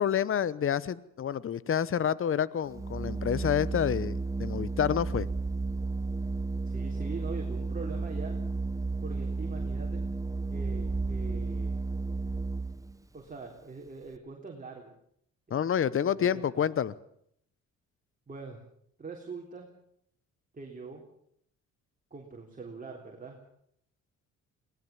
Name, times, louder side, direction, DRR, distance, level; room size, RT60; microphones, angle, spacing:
voice 1, 0.0-5.3 15.5-16.9, left 9 dB, 45° left, 20 dB, 1.0 m, -28 dB
Organ, 2.6-13.0, right 3 dB, 10° right, 1.0 m, -33 dB
voice 2, 6.7-8.4 9.0-10.1 10.5-11.8 13.1-14.9 15.5-15.6 16.0-16.7 18.3-18.6 19.0-19.7 20.5-21.0 22.1-23.4, right 4 dB, 25° right, 0 dB, 3.8 m, -43 dB
21.5 x 18.0 x 7.3 m, 0.69 s
cardioid pair, 90°, 30 cm